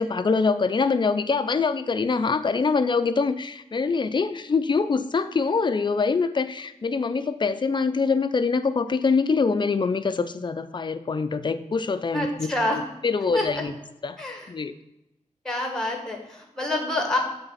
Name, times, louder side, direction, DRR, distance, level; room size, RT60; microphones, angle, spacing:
voice 1, 0.0-13.7 14.0-14.2 14.5-14.7, left 4 dB, 35° left, 11 dB, 0.4 m, -24 dB
voice 2, 12.1-12.8 13.3-13.5 14.2-14.5 15.5-17.2, left 1 dB, 5° left, 2 dB, 1.7 m, -27 dB
7.9 x 3.5 x 5.7 m, 0.87 s
wide cardioid pair, 90°, 13 cm